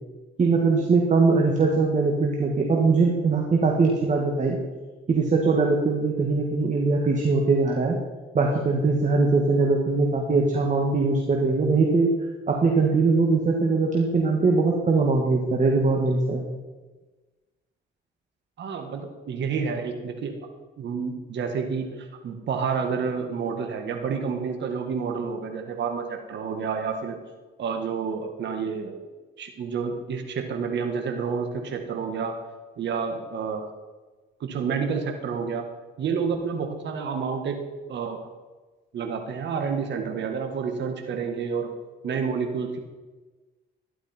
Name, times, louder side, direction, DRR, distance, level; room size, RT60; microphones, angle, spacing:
voice 1, 0.4-4.6 5.1-8.0 8.3-12.1 12.5-16.4, right 3 dB, 40° right, 1 dB, 2.0 m, -21 dB
voice 2, 18.6-20.3 20.8-27.2 27.6-29.0 29.4-32.4 32.8-33.7 34.4-35.6 36.0-37.6 37.9-38.2 38.9-41.7 42.0-42.8, right 6 dB, 65° right, 4 dB, 1.8 m, -29 dB
13.0 x 11.5 x 4.5 m, 1.3 s
cardioid pair, 90°, 20 cm